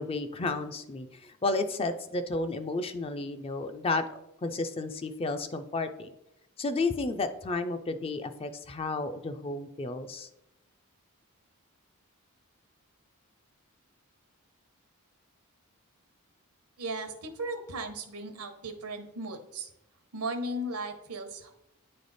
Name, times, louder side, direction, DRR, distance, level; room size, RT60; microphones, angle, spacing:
voice 1, 0.0-4.0 4.4-6.1 6.6-10.3, left 3 dB, 25° left, 9 dB, 0.4 m, -32 dB
voice 2, 16.8-19.7 20.1-21.5, right 1 dB, 85° right, 6 dB, 1.0 m, -36 dB
9.4 x 3.3 x 4.0 m, 0.83 s
head